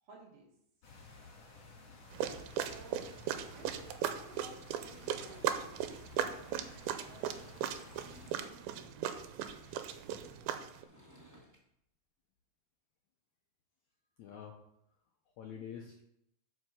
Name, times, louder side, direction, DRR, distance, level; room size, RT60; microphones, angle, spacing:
voice 1, 0.0-0.5 2.4-3.1 3.5-5.9 6.7-9.3, right 3 dB, 55° right, -1 dB, 2.3 m, -57 dB
sound 1, 0.8-8.3, left 3 dB, 50° left, 2.7 m, -55 dB
sound 2, 2.1-10.8, right 9 dB, 90° right, 2.6 m, -38 dB
Sliding door / Wood, 4.7-5.9 7.4-7.5 7.7-8.9 10.6-11.6, equal, 10° right, 0.9 m, -59 dB
voice 2, 9.5-10.7 14.2-14.6 15.4-16.0, left 8 dB, 85° left, 2 dB, 1.6 m, -49 dB
8.0 x 5.6 x 5.6 m, 0.76 s
omnidirectional pair, 4.3 m